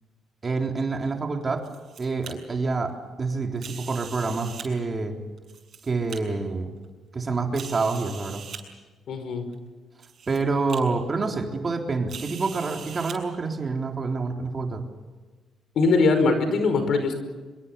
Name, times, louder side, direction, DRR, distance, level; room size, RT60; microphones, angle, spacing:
voice 1, 0.4-1.6 2.0-5.2 5.8-6.7 7.1-8.4 10.3-14.8, right 3 dB, 35° right, 3 dB, 3.8 m, -27 dB
sound 1, 1.4-2.3 3.6-4.7 5.4-6.2 6.8-6.9 7.5-8.6 9.5-9.6 10.0-10.4 10.7-10.8 12.1-13.2, right 7 dB, 55° right, 6.8 m, -41 dB
voice 2, 9.1-9.5 15.7-17.1, left 3 dB, 65° left, 8 dB, 5.1 m, -21 dB
25.0 x 23.5 x 7.0 m, 1.3 s
cardioid pair, 90°, 0 cm